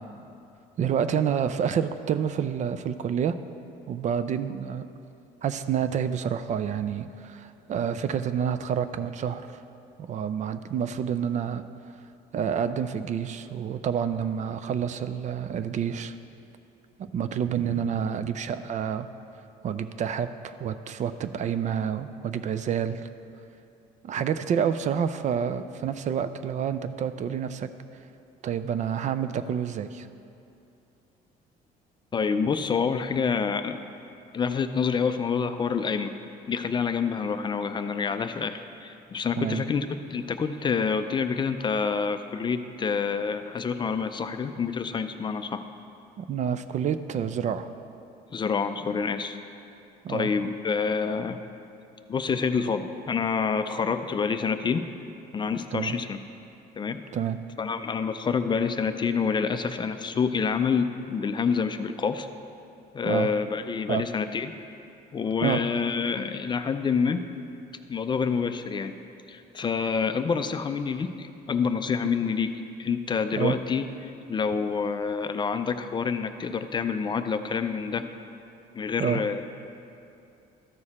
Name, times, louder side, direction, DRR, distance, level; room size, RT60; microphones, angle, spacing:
voice 1, 0.8-3.4 3.9-4.8 5.4-9.6 10.0-11.6 12.3-16.2 17.0-19.1 19.6-23.1 24.0-27.7 28.4-30.1 39.4-39.7 46.2-47.7 50.0-50.3 55.7-56.0 57.1-57.4 63.0-63.3 63.9-64.1 65.4-65.6 72.0-72.1 73.3-73.6 79.0-79.2, right 8 dB, 45° right, 11 dB, 0.4 m, -28 dB
voice 2, 32.1-33.8 34.3-36.1 36.5-45.6 48.3-49.4 50.1-51.4 52.1-54.9 55.3-56.2 56.8-57.0 57.6-62.3 62.9-64.5 65.1-67.2 67.9-69.0 69.3-72.5 72.8-78.0 78.7-79.4, left 5 dB, 30° left, 9 dB, 0.4 m, -27 dB
13.5 x 4.8 x 4.2 m, 2.7 s
cardioid pair, 110°, 17 cm